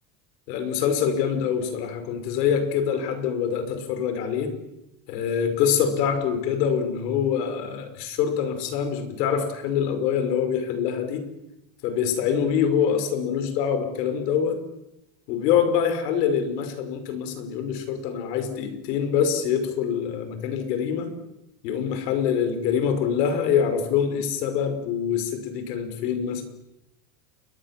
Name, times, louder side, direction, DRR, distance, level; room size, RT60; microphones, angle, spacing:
voice 1, 0.5-4.5 5.1-11.2 11.8-14.6 15.3-21.1 21.6-26.4, left 7 dB, 80° left, 9 dB, 5.6 m, -25 dB
30.0 x 22.5 x 7.5 m, 0.89 s
cardioid pair, 165°, 48 cm